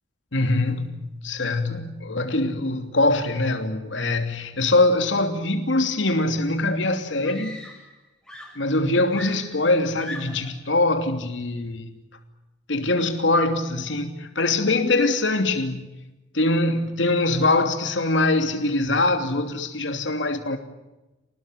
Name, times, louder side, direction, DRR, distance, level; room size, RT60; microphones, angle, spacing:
voice 1, 0.3-7.6 8.5-11.9 12.7-15.9 16.3-20.6, left 2 dB, 80° left, 3.0 m, -23 dB
Screaming, 7.2-8.0 8.3-10.6 11.6-11.8, left 1 dB, 5° left, 6.6 m, -40 dB
27.0 x 19.5 x 9.3 m
head